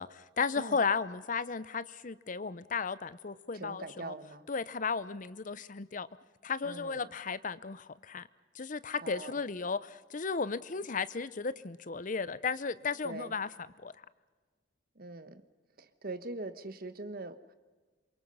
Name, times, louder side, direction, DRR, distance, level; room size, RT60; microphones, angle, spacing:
voice 1, 0.0-4.1 4.5-6.1 6.4-8.3 8.6-13.5 13.8-13.9, left 5 dB, 45° left, 16 dB, 0.7 m, -34 dB
voice 2, 3.5-4.5 6.6-7.1 9.0-9.4 13.0-13.3 14.9-15.4 15.8-17.5, right 2 dB, 50° right, 12 dB, 1.3 m, -42 dB
27.5 x 24.0 x 5.6 m, 1.4 s
head